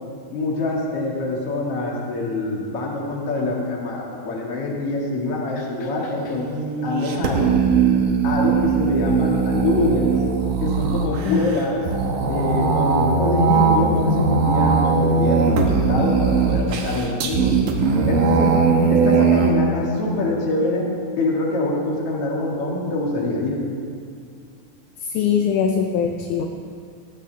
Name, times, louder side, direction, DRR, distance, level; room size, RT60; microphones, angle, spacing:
voice 1, 0.3-7.5 8.2-10.1 10.6-11.9 12.3-17.5 18.1-20.9 21.2-23.6, left 2 dB, 45° left, -3 dB, 2.8 m, -24 dB
sound 1, 6.2-19.5, right 5 dB, 70° right, 2.6 m, -20 dB
voice 2, 18.4-19.2 25.0-26.5, left 7 dB, 75° left, 4 dB, 2.0 m, -23 dB
18.5 x 14.5 x 3.4 m, 2.2 s
omnidirectional pair, 4.1 m